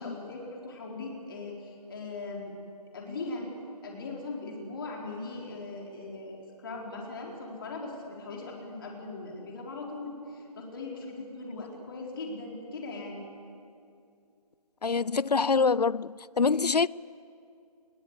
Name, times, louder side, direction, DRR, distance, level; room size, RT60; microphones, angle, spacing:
voice 1, 0.0-2.5 2.9-3.5 3.8-13.2, left 3 dB, 35° left, 4.1 m, -39 dB
voice 2, 14.8-16.9, left 4 dB, 75° left, 0.5 m, -25 dB
28.0 x 21.5 x 8.3 m
figure-of-eight pair, 155°, 21 cm